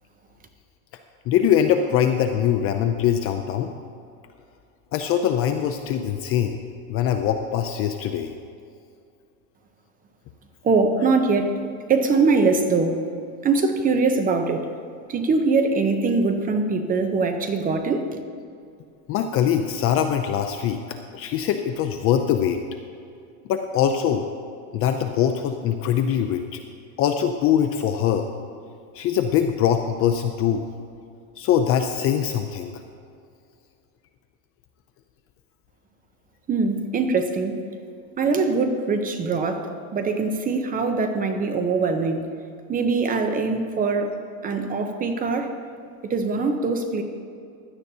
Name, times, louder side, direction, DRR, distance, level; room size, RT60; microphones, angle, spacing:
voice 1, 1.3-3.7 4.9-6.6 6.9-8.3 19.1-22.6 23.5-24.3 24.7-26.6 27.0-28.3 28.9-30.7 31.4-32.7, left 9 dB, 35° left, 6 dB, 0.4 m, -22 dB
voice 2, 10.6-11.5 11.9-13.0 13.4-14.7 15.1-18.2 36.5-37.6 38.2-42.2 42.7-44.1 44.4-45.5 46.0-47.0, right 4 dB, 20° right, 6 dB, 0.6 m, -22 dB
16.0 x 11.5 x 2.7 m, 2.4 s
supercardioid pair, 150°, 44 cm